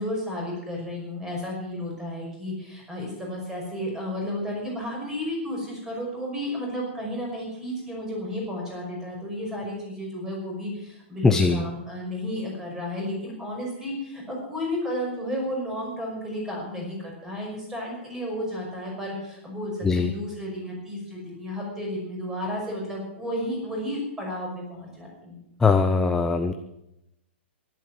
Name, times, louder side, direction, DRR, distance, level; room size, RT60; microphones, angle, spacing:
voice 1, 0.0-25.4, left 1 dB, 10° right, -1 dB, 5.7 m, -32 dB
voice 2, 11.2-11.6 19.8-20.1 25.6-26.5, left 4 dB, 5° left, 6 dB, 0.7 m, -20 dB
14.0 x 12.0 x 7.4 m, 0.84 s
hypercardioid pair, 155°, 7 cm